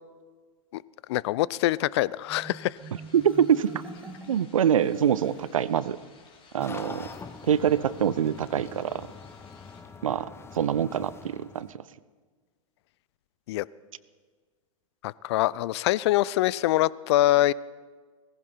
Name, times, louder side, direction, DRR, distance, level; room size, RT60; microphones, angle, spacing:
voice 1, 1.1-2.8 13.5-13.6 15.0-17.5, left 15 dB, 55° left, 22 dB, 0.4 m, -24 dB
Marimba xylophone, 2.3-5.6, right 3 dB, 10° right, 1.7 m, -45 dB
sound 1, 2.7-9.8, left 4 dB, 30° left, 2.4 m, -57 dB
voice 2, 3.1-3.8 4.3-6.0 6.5-7.1 7.4-9.1 10.0-10.3 10.5-11.8, right 9 dB, 75° right, 18 dB, 0.5 m, -25 dB
sound 2, 6.6-11.7, left 5 dB, 15° left, 0.9 m, -44 dB
18.5 x 15.5 x 4.5 m, 1.5 s
figure-of-eight pair, 95°, 17 cm